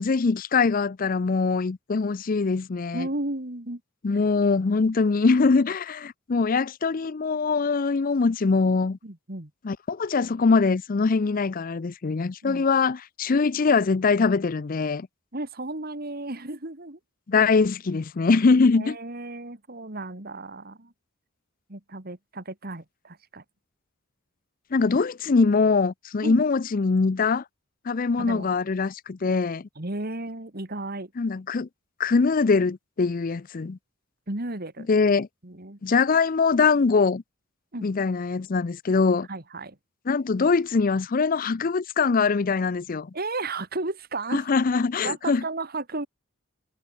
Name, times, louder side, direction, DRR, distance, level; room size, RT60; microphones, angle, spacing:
voice 1, 0.0-3.1 4.0-9.0 9.6-15.1 17.3-19.0 24.7-27.4 27.9-29.7 31.2-31.7 32.0-33.8 34.9-35.3 35.8-37.2 37.8-39.3 40.1-43.1 44.3-45.4, left 4 dB, 40° left, 0.5 m, -22 dB
voice 2, 2.9-3.8 4.1-4.2 9.0-9.5 12.4-12.6 15.3-17.0 18.8-20.9 21.7-23.4 26.2-26.4 28.2-28.5 29.8-31.1 34.3-34.9 35.4-35.8 37.7-37.9 39.3-39.8 43.1-44.5 45.0-46.1, right 2 dB, 45° right, 2.5 m, -34 dB
head